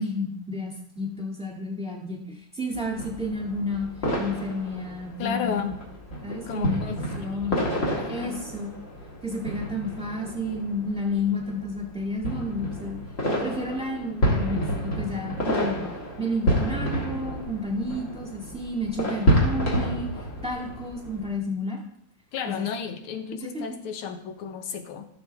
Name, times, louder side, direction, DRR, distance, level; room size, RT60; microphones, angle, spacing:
voice 1, 0.0-3.9 4.2-5.6 6.2-7.6 8.1-8.7 9.2-13.0 13.4-15.9 16.2-20.1 20.4-21.8 22.5-22.7 23.5-23.8, left 1 dB, 5° right, -1 dB, 2.0 m, -31 dB
sound 1, 2.7-21.3, equal, 40° left, 2.1 m, -29 dB
voice 2, 5.2-5.8 6.5-7.0 8.0-8.4 22.3-25.1, left 7 dB, 90° left, 7 dB, 1.8 m, -32 dB
15.0 x 6.7 x 3.5 m, 0.68 s
omnidirectional pair, 2.3 m